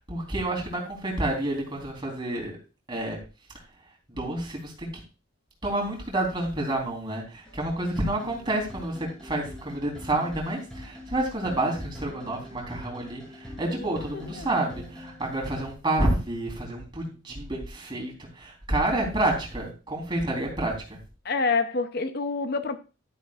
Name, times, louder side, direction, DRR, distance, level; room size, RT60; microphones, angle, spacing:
voice 1, 0.0-2.6 2.9-3.2 4.2-4.9 5.6-13.2 13.6-21.0, right 1 dB, 25° right, 3.7 m, -29 dB
sound 1, 7.5-15.7, left 1 dB, 5° left, 4.3 m, -44 dB
voice 2, 13.7-14.5 21.2-22.8, left 4 dB, 50° left, 0.6 m, -28 dB
12.0 x 10.0 x 2.4 m
head